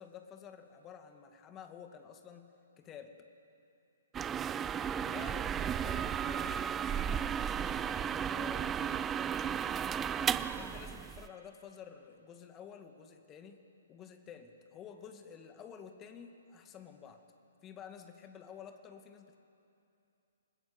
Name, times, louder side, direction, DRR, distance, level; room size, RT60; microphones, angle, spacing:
voice 1, 0.0-3.2 4.9-9.1 10.5-13.6 13.9-17.3 17.6-19.4, left 7 dB, 20° left, 6 dB, 2.1 m, -51 dB
sound 1, 4.1-11.3, right 8 dB, 15° right, 0.6 m, -34 dB
28.0 x 21.0 x 8.1 m, 2.7 s
figure-of-eight pair, 125°, 0 cm